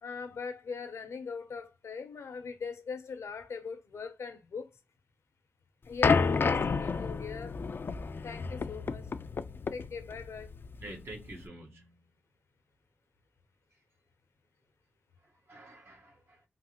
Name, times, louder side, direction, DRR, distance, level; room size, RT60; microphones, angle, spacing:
voice 1, 0.0-4.7 5.9-7.6 8.2-9.1 9.7-10.5, left 5 dB, 85° left, 0.7 m, -41 dB
sound 1, 6.0-11.4, left 4 dB, 50° left, 0.3 m, -30 dB
voice 2, 10.8-12.1 15.2-16.4, right 1 dB, 60° right, 1.3 m, -48 dB
3.2 x 2.0 x 2.9 m
cardioid pair, 75°, 5 cm